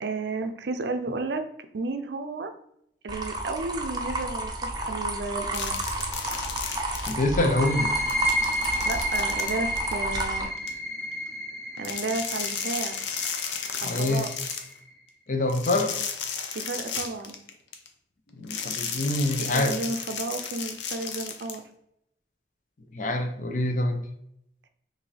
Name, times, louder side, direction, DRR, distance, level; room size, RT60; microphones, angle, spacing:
voice 1, 0.0-1.5 1.7-2.5 3.0-5.8 8.9-10.5 11.8-13.0 13.8-14.3 16.5-17.3 19.4-21.6, right 3 dB, 75° right, 8 dB, 0.5 m, -32 dB
sound 1, 3.1-10.4, right 2 dB, 25° right, 0.5 m, -31 dB
sound 2, 5.5-7.5 7.8-10.7 11.8-14.7 15.5-17.9 18.5-21.6, left 6 dB, 90° left, 0.6 m, -34 dB
voice 2, 7.1-7.9 13.8-14.3 15.3-15.9 18.3-19.8 22.9-24.1, left 2 dB, 45° left, 5 dB, 0.6 m, -25 dB
sound 3, 7.4-14.9, equal, 5° left, 0.9 m, -31 dB
6.0 x 2.7 x 3.2 m, 0.76 s
head